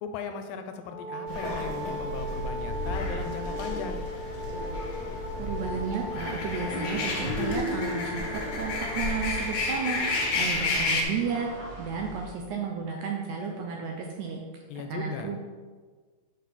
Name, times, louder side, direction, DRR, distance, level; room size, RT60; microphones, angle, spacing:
voice 1, 0.0-4.1 14.7-15.4, left 6 dB, 85° left, 7 dB, 2.3 m, -37 dB
Wind instrument woodwind instrument, 0.8-10.8, equal, 40° left, 1.7 m, -39 dB
sound 1, 1.3-11.0, left 2 dB, 65° left, 2.0 m, -32 dB
sound 2, 2.5-12.3, left 1 dB, 55° right, 3.2 m, -39 dB
voice 2, 5.4-11.5 11.8-14.4 14.9-15.4, right 6 dB, 80° right, 1 dB, 1.9 m, -33 dB
6.8 x 6.4 x 4.1 m, 1.5 s
omnidirectional pair, 4.1 m